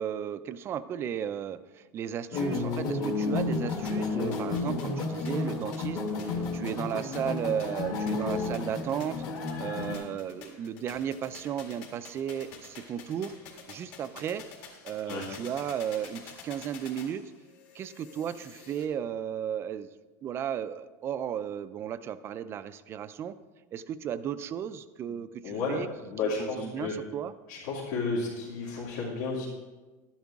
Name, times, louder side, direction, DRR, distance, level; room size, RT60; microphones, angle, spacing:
voice 1, 0.0-9.2 9.6-13.3 13.7-14.4 14.8-17.2 17.7-19.9 20.2-23.4 23.7-26.1 26.4-27.3, right 9 dB, 25° right, 13 dB, 0.4 m, -34 dB
sound 1, 2.3-10.0, left 3 dB, 35° left, 1.2 m, -31 dB
sound 2, 3.8-18.8, left 5 dB, 55° left, 2.0 m, -49 dB
voice 2, 25.4-25.8 26.1-26.9 27.5-29.5, left 4 dB, 75° left, -8 dB, 2.7 m, -32 dB
12.0 x 10.5 x 3.6 m, 1.2 s
supercardioid pair, 165°, 10 cm